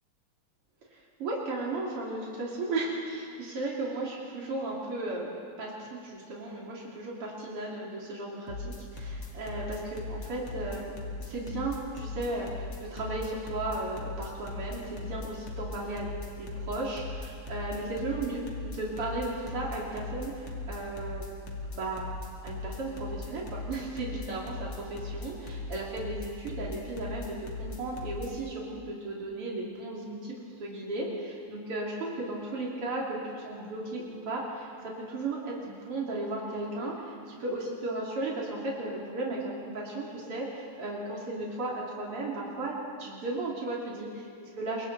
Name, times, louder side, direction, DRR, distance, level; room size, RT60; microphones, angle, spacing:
voice 1, 0.9-5.3 5.6-10.9 11.2-16.1 16.4-21.2 21.7-22.1 22.4-30.3 30.6-42.7 43.0-44.9, right 2 dB, 90° right, -4 dB, 3.7 m, -35 dB
sound 1, 8.5-28.3, left 3 dB, 70° left, 3.3 m, -38 dB
27.0 x 23.5 x 4.1 m, 2.3 s
omnidirectional pair, 2.4 m